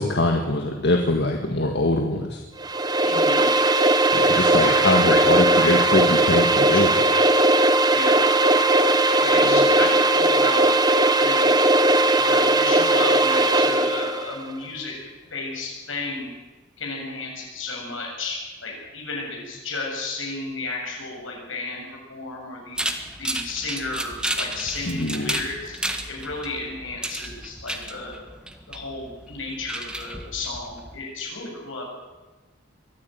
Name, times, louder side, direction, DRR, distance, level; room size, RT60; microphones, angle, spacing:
voice 1, 0.0-2.4 4.1-7.0 9.4-9.7 24.9-25.4, left 2 dB, 60° left, 3 dB, 1.8 m, -23 dB
sound 1, 2.6-14.2, right 2 dB, 20° right, 1.2 m, -18 dB
voice 2, 3.0-3.5 4.3-6.0 6.6-7.2 7.9-8.3 9.2-10.8 11.2-11.5 12.2-15.0 15.3-16.3 16.8-22.8 23.2-25.8 26.1-28.2 28.7-31.9, left 3 dB, 80° left, 0 dB, 7.9 m, -32 dB
sound 2, 22.8-31.0, right 1 dB, 5° right, 1.6 m, -32 dB
23.0 x 13.5 x 9.4 m, 1.2 s
head